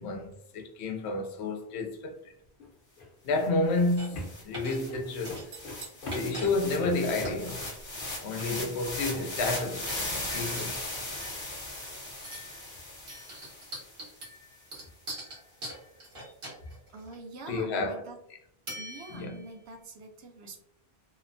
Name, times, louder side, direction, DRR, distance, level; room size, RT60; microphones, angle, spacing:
voice 1, 0.0-2.3 3.2-5.5 6.1-7.7 8.2-10.8 17.5-18.0 19.1-19.4, left 2 dB, 90° left, 0.9 m, -30 dB
sound 1, 2.5-8.1, left 1 dB, 60° left, 0.9 m, -43 dB
sound 2, 3.4-3.5 3.8-14.1, left 1 dB, 30° left, 0.7 m, -38 dB
sound 3, 4.0-4.3 4.5-5.0 5.2-6.5 6.8-6.9 7.2-7.4 8.1-8.7 9.1-9.4 9.9-10.8 11.2-11.9 12.2-12.6 13.1-17.1 18.7-19.5, right 1 dB, 60° right, 1.2 m, -42 dB
voice 2, 16.9-18.2 18.8-20.6, right 2 dB, 85° right, 0.9 m, -45 dB
2.8 x 2.1 x 2.5 m
omnidirectional pair, 1.1 m